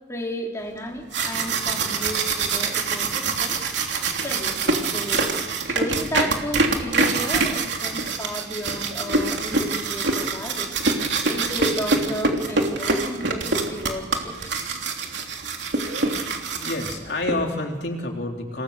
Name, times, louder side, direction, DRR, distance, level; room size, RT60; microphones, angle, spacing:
voice 1, 0.1-3.6 4.2-5.3 5.7-10.7 11.3-14.6, equal, 15° left, -1 dB, 4.1 m, -33 dB
sound 1, 0.9-17.3, right 3 dB, 75° right, 3.2 m, -25 dB
voice 2, 16.5-18.6, left 2 dB, 65° left, 1 dB, 3.8 m, -28 dB
28.0 x 20.0 x 6.8 m, 1.3 s
head